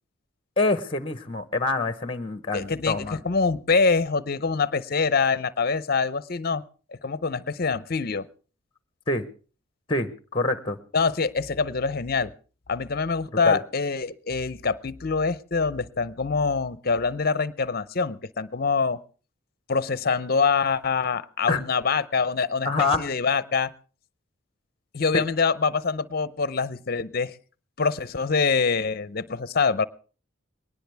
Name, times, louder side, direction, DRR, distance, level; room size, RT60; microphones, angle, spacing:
voice 1, 0.6-3.2 9.1-9.2 9.9-10.8 13.4-13.6 21.5-21.6 22.6-23.1, left 3 dB, 25° left, 12 dB, 1.0 m, -26 dB
voice 2, 2.5-6.6 7.0-8.3 10.9-12.3 12.7-19.0 19.7-23.7 24.9-27.3 27.8-29.8, left 4 dB, 50° left, 16 dB, 0.7 m, -25 dB
21.0 x 18.5 x 3.5 m, 0.38 s
head